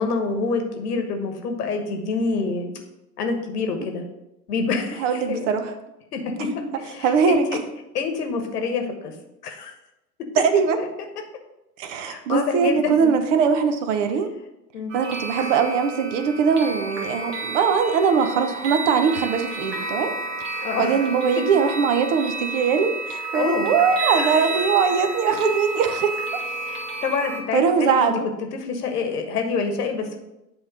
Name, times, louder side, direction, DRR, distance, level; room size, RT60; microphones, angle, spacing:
voice 1, 0.0-2.7 3.2-4.0 4.5-5.5 6.1-6.5 6.8-7.6 7.9-9.1 9.4-9.7 12.1-13.1 14.7-14.9 20.6-21.0 21.4-21.5 23.3-23.7 24.1-24.7 26.6-28.1 28.5-30.2, left 4 dB, 70° left, 4 dB, 1.3 m, -27 dB
voice 2, 5.0-5.7 7.0-7.5 10.4-10.8 11.8-14.3 14.9-20.1 20.8-26.4 27.5-28.3, right 6 dB, 50° right, 8 dB, 0.8 m, -21 dB
sound 1, 14.9-27.4, right 2 dB, 70° right, 1.6 m, -31 dB
8.2 x 3.1 x 4.8 m, 0.92 s
hypercardioid pair, 95°, 49 cm